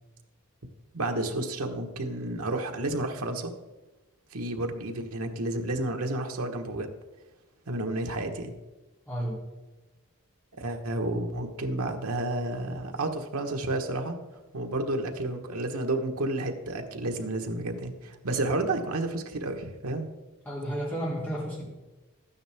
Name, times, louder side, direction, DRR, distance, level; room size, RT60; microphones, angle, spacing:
voice 1, 0.9-3.5 4.3-6.9 7.7-8.5 10.6-14.2 14.5-20.1, right 2 dB, 85° right, 4 dB, 1.3 m, -31 dB
voice 2, 9.1-9.4 20.4-21.7, equal, 10° left, -6 dB, 3.3 m, -32 dB
12.0 x 9.5 x 3.5 m, 1.1 s
head